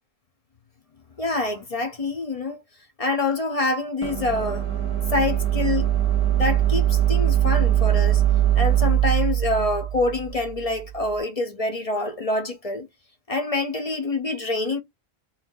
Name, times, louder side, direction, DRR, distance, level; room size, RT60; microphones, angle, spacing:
voice 1, 1.2-2.6 3.0-4.6 5.1-5.9 6.3-8.2 8.6-12.9 13.3-14.8, left 2 dB, 40° left, 0.7 m, -26 dB
sound 1, 4.0-11.1, right 12 dB, 35° right, 0.7 m, -22 dB
3.1 x 2.6 x 3.7 m
omnidirectional pair, 1.0 m